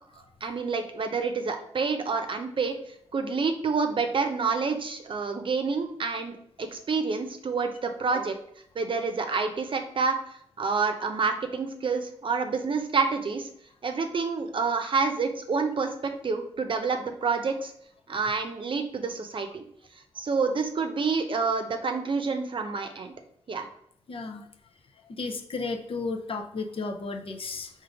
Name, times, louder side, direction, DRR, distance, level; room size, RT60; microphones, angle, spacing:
voice 1, 0.4-2.7 3.1-8.3 8.7-10.2 10.6-13.5 13.8-17.7 18.1-19.6 20.2-23.1 23.5-23.7, right 4 dB, 50° right, 6 dB, 0.7 m, -28 dB
voice 2, 24.1-24.5 25.2-27.7, left 3 dB, 55° left, 4 dB, 0.7 m, -33 dB
3.7 x 2.7 x 4.7 m, 0.69 s
cardioid pair, 60°, 11 cm